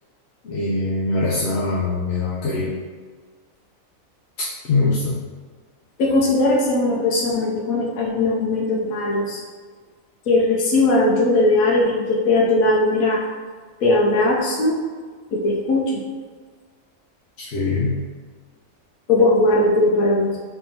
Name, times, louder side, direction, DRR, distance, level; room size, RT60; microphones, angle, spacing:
voice 1, 0.4-2.8 4.4-5.3 17.4-18.1, left 3 dB, 60° left, -5 dB, 0.8 m, -23 dB
voice 2, 6.0-9.4 10.3-13.2 13.8-14.8 15.3-16.0 19.1-20.4, left 2 dB, 90° left, -3 dB, 1.1 m, -19 dB
3.5 x 3.4 x 4.2 m, 1.5 s
omnidirectional pair, 1.4 m